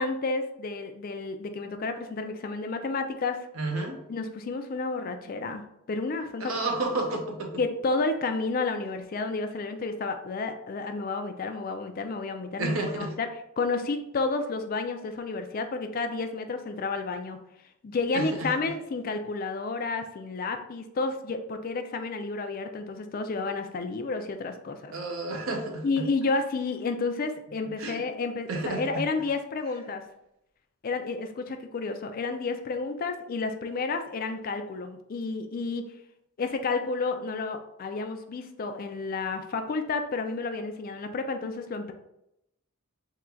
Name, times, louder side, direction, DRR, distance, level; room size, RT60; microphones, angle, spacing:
voice 1, 0.0-3.4 4.1-5.6 5.9-6.5 7.6-13.3 13.6-17.4 17.8-24.9 25.8-30.0 30.8-35.9 36.4-41.9, left 3 dB, 40° left, 7 dB, 0.4 m, -31 dB
voice 2, 3.5-4.0 6.4-7.5 12.6-13.1 18.1-18.5 24.9-26.0 27.8-28.0 28.5-29.0, right 2 dB, 70° right, 2 dB, 0.8 m, -31 dB
3.7 x 2.3 x 4.4 m, 0.83 s
head